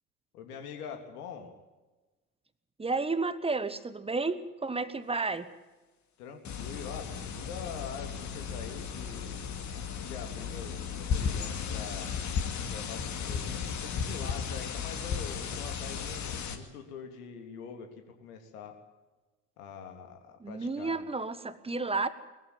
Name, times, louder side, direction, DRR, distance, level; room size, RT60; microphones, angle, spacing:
voice 1, 0.3-1.5 6.2-9.6 10.0-12.1 12.7-17.9 18.2-18.7 19.6-21.0, left 6 dB, 65° left, 5 dB, 3.4 m, -44 dB
voice 2, 2.8-5.5 20.4-22.1, right 3 dB, 10° right, 13 dB, 1.3 m, -31 dB
sound 1, 6.4-16.6, left 6 dB, 35° left, 2.3 m, -35 dB
20.5 x 14.5 x 9.5 m, 1.2 s
figure-of-eight pair, 70°, 48 cm